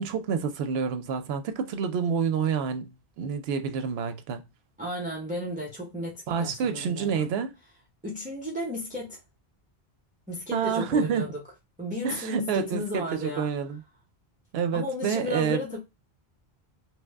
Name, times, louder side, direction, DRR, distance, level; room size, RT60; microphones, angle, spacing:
voice 1, 0.0-2.9 3.2-4.4 6.3-7.5 10.5-11.2 12.0-13.8 14.5-15.6, right 6 dB, 80° right, 0.8 m, -28 dB
voice 2, 4.8-7.3 8.0-9.2 10.3-11.4 11.8-13.5 14.7-15.8, left 1 dB, 10° right, 0.6 m, -34 dB
3.1 x 2.1 x 3.4 m
omnidirectional pair, 1.0 m